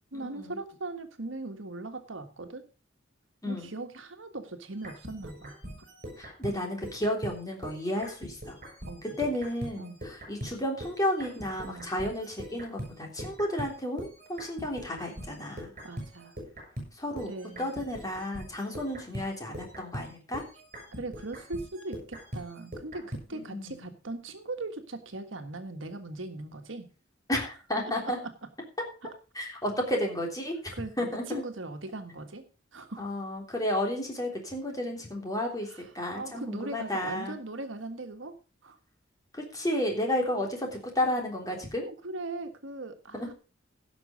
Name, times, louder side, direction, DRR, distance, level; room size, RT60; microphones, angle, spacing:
voice 1, 0.1-2.6 3.4-5.5 8.9-9.0 9.8-10.0 11.6-11.9 15.8-16.4 17.3-17.7 21.0-26.9 27.8-28.3 30.7-32.4 32.7-33.1 35.7-35.8 36.1-38.3 38.6-38.8 41.9-43.3, right 2 dB, 75° right, 7 dB, 1.5 m, -39 dB
voice 2, 3.4-3.7 6.2-8.6 9.0-15.7 16.9-17.3 17.6-20.4 23.3-23.9 27.3-28.2 29.3-31.4 33.0-37.4 39.3-41.9 43.1-43.3, left 1 dB, 20° left, 0 dB, 3.3 m, -32 dB
sound 1, 4.7-10.6 10.8-23.3, equal, 40° right, 6.8 m, -42 dB
16.5 x 6.2 x 5.1 m, 0.35 s
head